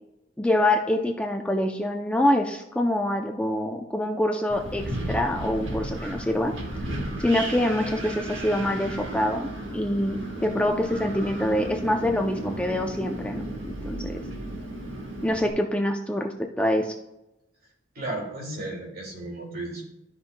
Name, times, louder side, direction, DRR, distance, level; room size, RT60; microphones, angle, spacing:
voice 1, 0.4-6.5 7.2-14.2 15.2-17.0, left 1 dB, 5° left, 2 dB, 0.5 m, -25 dB
Wind, 4.5-15.5, right 1 dB, 70° right, 1.4 m, -34 dB
voice 2, 17.9-19.8, right 2 dB, 50° right, 0 dB, 2.1 m, -34 dB
12.5 x 5.6 x 2.2 m, 0.88 s
head